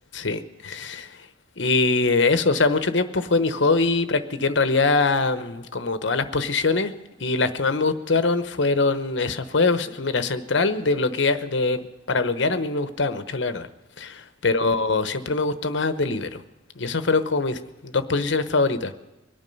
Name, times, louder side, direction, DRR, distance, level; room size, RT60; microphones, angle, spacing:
voice 1, 0.1-1.1 1.6-6.9 7.2-13.7 14.0-16.4 16.8-18.9, left 3 dB, 70° left, 11 dB, 1.0 m, -23 dB
24.0 x 9.0 x 5.4 m, 1.1 s
head